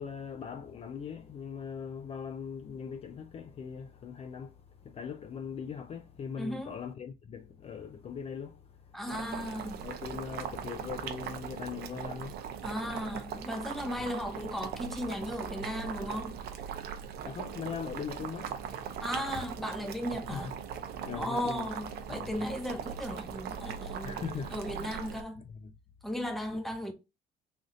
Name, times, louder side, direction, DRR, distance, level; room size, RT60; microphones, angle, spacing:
voice 1, 0.0-9.0 9.8-12.7 14.0-14.1 17.1-19.0 20.3-20.6 21.0-21.7 22.1-22.5 24.0-24.9 25.5-25.7, left 7 dB, 35° left, 0.4 m, -41 dB
voice 2, 6.4-6.8 8.9-9.9 12.6-16.3 19.0-20.5 21.1-24.2 24.5-25.5 26.0-26.9, equal, ahead, 0.8 m, -36 dB
Boiling, 9.1-25.2, right 8 dB, 70° right, 0.6 m, -40 dB
3.4 x 2.6 x 3.7 m
cardioid pair, 110°, 17 cm